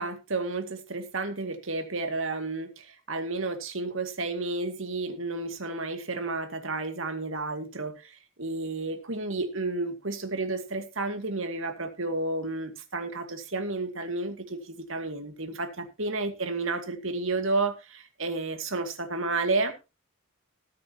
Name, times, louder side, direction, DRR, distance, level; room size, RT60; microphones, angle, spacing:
voice 1, 0.0-19.7, right 3 dB, 65° right, 7 dB, 2.4 m, -31 dB
19.5 x 8.8 x 2.9 m, 0.28 s
head